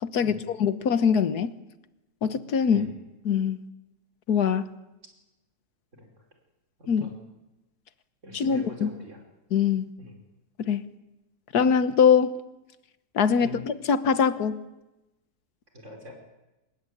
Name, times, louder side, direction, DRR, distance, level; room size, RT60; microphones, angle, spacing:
voice 1, 0.0-1.6 2.2-2.9 3.3-3.6 4.3-4.7 6.9-7.1 8.3-8.9 9.5-9.9 10.6-10.8 11.5-12.4 13.2-14.6, left 7 dB, 85° left, 13 dB, 1.7 m, -23 dB
voice 2, 6.8-7.2 8.2-9.2 10.0-10.2 13.4-13.6 15.7-16.1, left 1 dB, 50° right, 3 dB, 5.5 m, -43 dB
25.0 x 20.5 x 9.9 m, 1.0 s
omnidirectional pair, 1.6 m